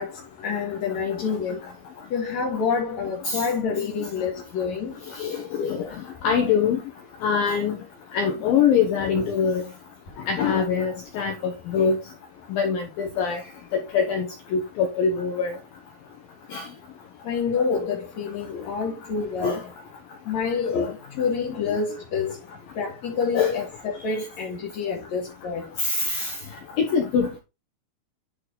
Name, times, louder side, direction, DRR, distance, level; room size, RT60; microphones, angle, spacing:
voice 1, 0.0-1.6 2.1-5.0 7.8-7.9 8.4-8.5 17.2-19.7 20.3-22.4 22.8-25.7, left 5 dB, 55° left, 2.0 m, -28 dB
voice 2, 5.1-5.9 6.2-6.8 7.2-7.8 8.1-9.6 10.3-12.0 12.5-13.4 13.7-15.6 16.5-16.6 18.5-18.6 19.4-19.6 20.7-20.9 21.7-21.8 23.3-23.6 25.8-26.4 26.8-27.4, left 6 dB, 90° left, 2.0 m, -23 dB
10.5 x 4.6 x 3.8 m
omnidirectional pair, 5.8 m